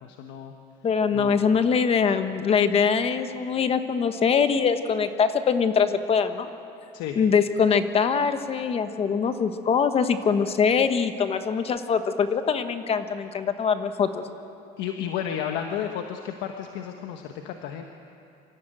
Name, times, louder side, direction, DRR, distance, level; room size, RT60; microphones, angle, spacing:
voice 1, 0.0-0.5 1.1-1.4 6.9-7.2 14.8-17.8, left 9 dB, 80° left, 4 dB, 1.3 m, -32 dB
voice 2, 0.8-6.5 7.1-14.2, left 6 dB, 35° left, 9 dB, 1.2 m, -23 dB
25.0 x 14.0 x 9.1 m, 2.7 s
cardioid pair, 135°, 18 cm